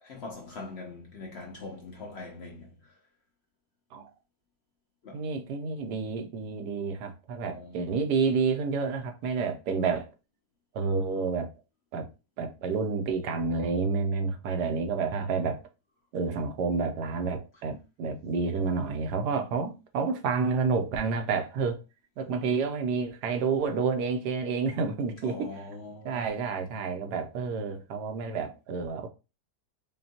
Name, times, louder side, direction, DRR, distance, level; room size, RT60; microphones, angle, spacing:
voice 1, 0.0-2.7 5.0-5.3 7.4-7.8 25.2-26.3, left 3 dB, 55° left, 0.7 m, -42 dB
voice 2, 5.1-10.1 10.7-11.5 11.9-12.1 12.4-15.6 16.1-21.8 22.2-25.5 26.0-29.1, right 5 dB, 85° right, 1.3 m, -29 dB
5.2 x 2.3 x 2.8 m
omnidirectional pair, 1.8 m